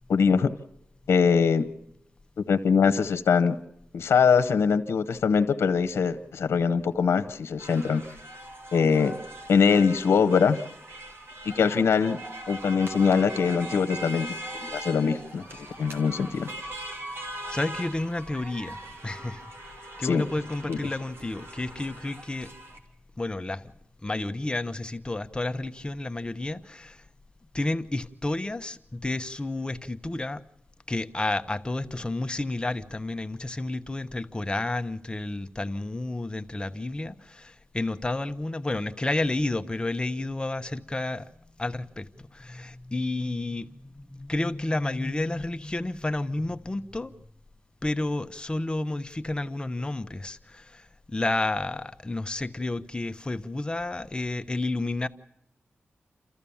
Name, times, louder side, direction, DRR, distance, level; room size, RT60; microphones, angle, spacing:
voice 1, 0.1-0.5 1.1-1.7 2.5-3.5 3.9-8.0 8.7-9.1 9.5-10.6 11.6-12.2 12.5-14.3 14.5-15.4 15.8-16.5 20.0-20.2 20.7-20.8, left 6 dB, 85° left, 1.0 m, -22 dB
sound 1, 7.6-22.8, right 1 dB, 65° right, 3.2 m, -41 dB
voice 2, 17.5-19.4 20.0-22.5 23.2-23.7 24.0-27.0 27.5-30.4 30.9-41.3 41.6-47.1 47.8-55.1, left 2 dB, 20° left, 1.0 m, -31 dB
28.0 x 14.0 x 7.2 m
cardioid pair, 70°, 4 cm